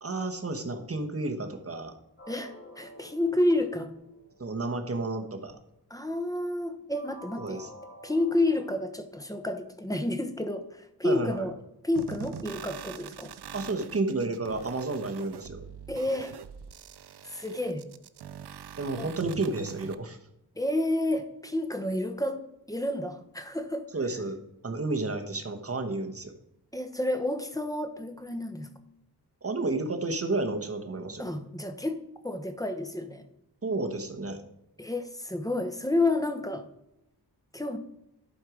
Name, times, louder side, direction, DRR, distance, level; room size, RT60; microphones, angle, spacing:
voice 1, 0.0-1.9 4.4-5.6 7.4-7.7 11.0-11.5 13.5-15.6 18.8-20.2 23.9-24.4 24.6-26.3 29.4-31.3 33.6-34.4, right 2 dB, 35° right, 5 dB, 1.2 m, -31 dB
sound 1, 2.2-5.1 6.9-8.8, equal, 35° left, 2.0 m, -50 dB
voice 2, 2.3-3.9 5.9-7.6 8.0-11.5 11.8-13.3 15.9-16.3 17.2-17.9 19.0-19.1 20.5-22.4 22.7-23.9 26.7-28.7 31.2-33.2 34.8-36.7 37.5-37.8, left 1 dB, 10° left, 7 dB, 1.0 m, -30 dB
sound 2, 12.0-20.0, right 8 dB, 80° right, 0.6 m, -43 dB
11.5 x 4.5 x 5.0 m, 0.83 s
wide cardioid pair, 85°, 39 cm